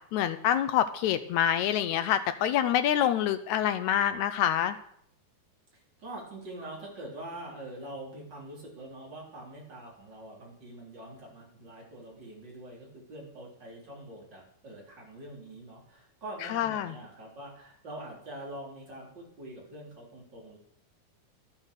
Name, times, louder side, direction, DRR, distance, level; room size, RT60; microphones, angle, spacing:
voice 1, 0.1-4.8 16.5-16.9, left 10 dB, 80° left, 10 dB, 1.7 m, -26 dB
voice 2, 5.7-20.6, right 1 dB, 30° right, -3 dB, 4.4 m, -44 dB
12.0 x 8.7 x 6.4 m, 0.65 s
omnidirectional pair, 4.0 m